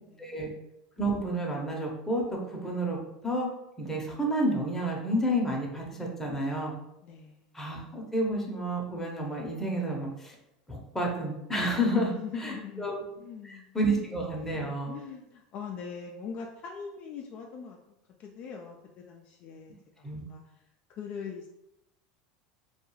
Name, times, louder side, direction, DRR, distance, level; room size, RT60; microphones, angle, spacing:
voice 1, 0.2-0.5 1.0-3.5 3.8-6.7 7.5-10.4 10.7-13.0 13.4-14.9 20.0-20.2, right 1 dB, 10° left, -1 dB, 0.7 m, -30 dB
voice 2, 7.0-7.5 11.9-12.9 13.2-13.8 14.9-17.8 18.2-20.4 20.9-21.5, left 6 dB, 45° left, 1 dB, 0.3 m, -41 dB
2.3 x 2.2 x 3.0 m, 0.87 s
hypercardioid pair, 100°, 4 cm